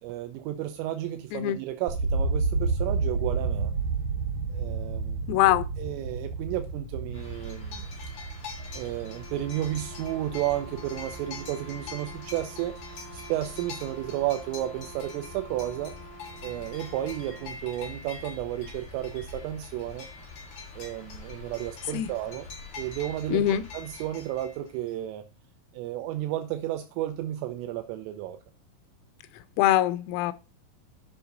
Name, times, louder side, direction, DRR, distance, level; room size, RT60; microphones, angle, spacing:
voice 1, 0.0-3.7 4.5-7.9 8.7-12.8 13.1-16.0 16.4-20.1 20.8-22.5 22.8-25.2 25.7-28.4, right 13 dB, 80° right, 3.3 m, -32 dB
sound 1, 1.9-11.9 12.2-12.9, right 4 dB, 60° right, 2.4 m, -31 dB
voice 2, 5.3-5.7 21.9-22.1 23.3-23.6 29.6-30.3, left 13 dB, 90° left, 3.5 m, -23 dB
sound 2, 7.1-24.9, left 4 dB, 40° left, 4.1 m, -43 dB
Brass instrument, 8.9-17.6, right 2 dB, 65° left, 7.3 m, -48 dB
13.5 x 5.9 x 3.9 m
omnidirectional pair, 6.0 m